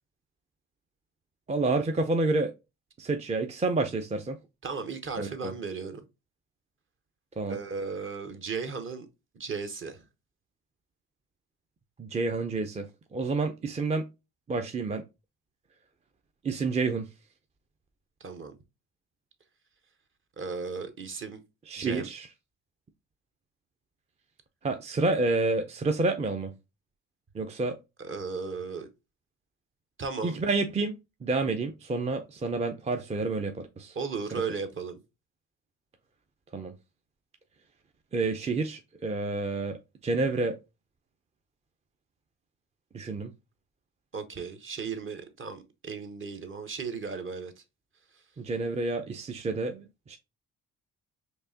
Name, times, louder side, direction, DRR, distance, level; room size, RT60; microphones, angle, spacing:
voice 1, 1.5-2.5 3.0-4.4 5.2-5.5 7.4-7.6 12.0-14.0 14.5-15.0 16.4-17.1 21.7-22.3 24.6-26.5 27.3-27.8 30.2-30.9 31.2-34.0 36.5-36.7 38.1-40.6 42.9-43.3 48.4-50.2, right 3 dB, 20° right, 0.4 m, -29 dB
voice 2, 4.6-6.0 7.5-9.1 9.3-10.1 18.2-18.6 20.4-21.4 21.8-22.1 28.0-28.9 30.0-30.4 33.9-35.0 44.1-47.5 48.1-48.2, right 5 dB, 40° right, 0.9 m, -35 dB
4.5 x 2.8 x 2.6 m
cardioid pair, 90°, 30 cm